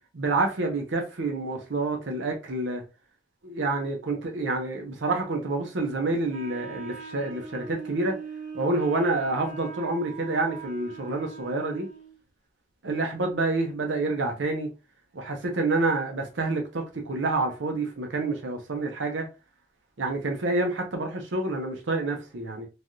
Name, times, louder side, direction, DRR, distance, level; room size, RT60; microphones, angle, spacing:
voice 1, 0.1-2.8 3.4-8.2 8.5-11.9 12.8-14.7 15.1-19.3 20.0-22.7, right 2 dB, 75° right, 0.7 m, -28 dB
Wind instrument woodwind instrument, 6.3-12.2, right 5 dB, 45° right, 1.5 m, -41 dB
3.3 x 2.3 x 2.5 m
head